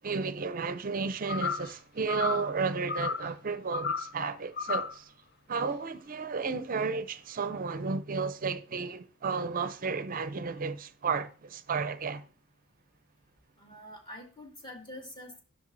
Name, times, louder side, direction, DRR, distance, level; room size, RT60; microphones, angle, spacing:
voice 1, 0.0-5.1 5.5-12.3, right 5 dB, 40° right, 0.5 m, -33 dB
sound 1, 1.3-1.7 2.1-2.5 2.9-3.3 3.7-4.1 4.6-5.0, left 5 dB, 50° left, 0.6 m, -33 dB
voice 2, 13.6-15.4, left 1 dB, 20° left, 2.1 m, -46 dB
10.5 x 6.4 x 2.6 m
head